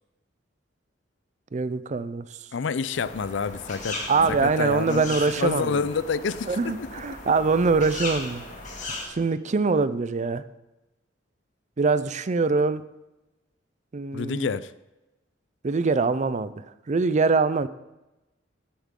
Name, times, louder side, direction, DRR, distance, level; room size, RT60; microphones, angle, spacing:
voice 1, 1.5-2.2 4.1-5.8 6.4-8.4 9.1-10.4 11.8-12.8 13.9-14.5 15.6-16.5 16.9-17.7, right 4 dB, 40° right, 0.5 m, -23 dB
voice 2, 2.5-4.0 4.3-6.9 7.3-7.4 8.9-9.0 14.1-14.7, left 5 dB, 75° left, 0.5 m, -28 dB
sound 1, 2.9-9.1, left 2 dB, 45° left, 2.1 m, -37 dB
16.0 x 7.1 x 3.7 m
head